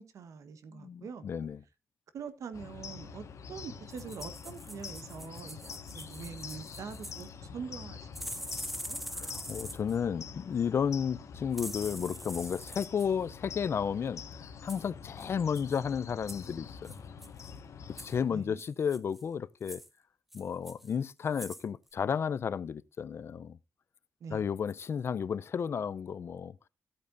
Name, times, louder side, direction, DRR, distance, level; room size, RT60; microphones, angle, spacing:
voice 1, 0.0-1.3 2.1-8.1 8.6-9.0 18.3-18.6 24.2-24.4, right 6 dB, 80° right, 1.2 m, -44 dB
voice 2, 0.7-1.6 9.1-14.2 14.6-16.9 17.9-19.8 20.3-23.6 24.3-26.6, left 7 dB, 50° left, 0.4 m, -33 dB
sound 1, 2.5-18.2, left 6 dB, 70° left, 1.4 m, -46 dB
sound 2, 3.9-7.3 8.1-10.0 11.5-13.1 14.7-14.9 15.2-15.3 15.5-15.8 16.3-16.5 16.8-17.5 18.0-18.1 18.6-19.2 19.6-19.9 20.3-20.9 21.3-21.6 21.9-22.0, equal, 5° right, 0.8 m, -44 dB
14.5 x 8.5 x 2.5 m
wide cardioid pair, 135°, 5 cm